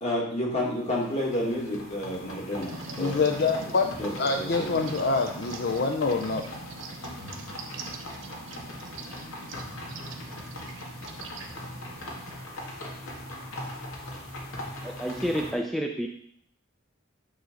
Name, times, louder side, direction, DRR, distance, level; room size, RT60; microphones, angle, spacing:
voice 1, 0.0-3.2 4.0-4.8, left 1 dB, 35° left, 2.4 m, -30 dB
sound 1, 0.6-15.5, left 1 dB, 85° left, 1.9 m, -41 dB
sound 2, 2.6-12.4, right 3 dB, 70° right, 1.0 m, -43 dB
voice 2, 3.0-3.9 4.2-6.5, left 4 dB, 50° left, 0.6 m, -26 dB
voice 3, 14.8-16.1, equal, ahead, 0.4 m, -29 dB
9.4 x 3.9 x 6.3 m
head